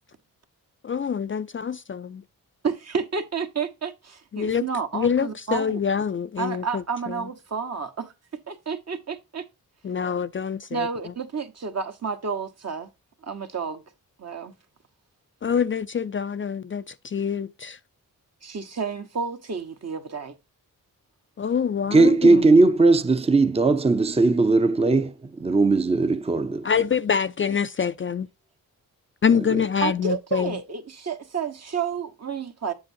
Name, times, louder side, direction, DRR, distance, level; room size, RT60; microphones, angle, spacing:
voice 1, 0.8-2.2 4.3-4.7 4.9-7.3 9.8-11.1 15.4-17.8 21.4-22.4 26.6-28.3 29.2-30.6, left 7 dB, 35° left, 0.4 m, -26 dB
voice 2, 2.6-5.8 6.4-9.4 10.7-12.9 13.2-13.8 14.2-14.5 18.4-20.3 29.8-32.7, right 6 dB, 45° right, 1.2 m, -30 dB
voice 3, 21.9-26.7, right 3 dB, 15° right, 0.6 m, -18 dB
7.7 x 7.1 x 2.7 m
cardioid pair, 70°, 35 cm